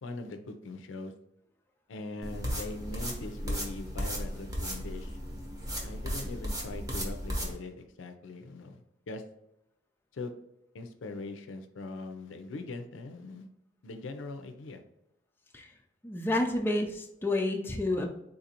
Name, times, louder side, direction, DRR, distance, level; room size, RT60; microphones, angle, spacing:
voice 1, 0.0-1.1 1.9-5.2 5.8-9.2 10.1-10.3 10.7-13.5 13.8-14.8, left 3 dB, 90° left, 8 dB, 0.4 m, -41 dB
sound 1, 2.2-7.5, equal, 20° right, 0.7 m, -35 dB
voice 2, 16.0-18.1, left 1 dB, 10° left, 2 dB, 0.3 m, -29 dB
3.8 x 2.5 x 2.8 m, 0.84 s
head